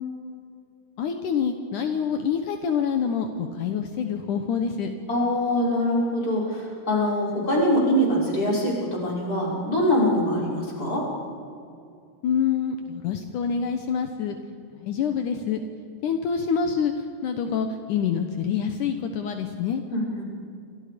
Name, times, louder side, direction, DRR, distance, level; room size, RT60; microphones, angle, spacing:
voice 1, 1.0-4.9 12.2-14.4 14.8-15.6 16.0-16.9 17.2-19.8, left 7 dB, 70° left, 6 dB, 2.5 m, -26 dB
voice 2, 5.1-11.1 19.9-20.2, equal, 25° left, -4 dB, 6.4 m, -23 dB
30.0 x 25.5 x 5.2 m, 2.4 s
omnidirectional pair, 3.9 m